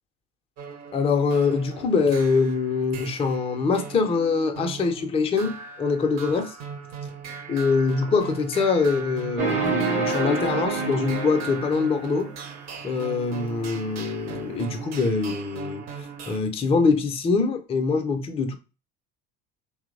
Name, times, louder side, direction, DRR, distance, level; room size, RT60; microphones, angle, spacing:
sound 1, 0.6-16.4, right 6 dB, 45° right, 0.6 m, -39 dB
voice 1, 0.9-6.6 7.5-12.3 12.8-15.8 16.3-18.5, left 4 dB, 15° left, 0.4 m, -24 dB
sound 2, 9.4-12.4, right 3 dB, 90° right, 0.8 m, -28 dB
2.8 x 2.0 x 2.5 m
hypercardioid pair, 70°, 39 cm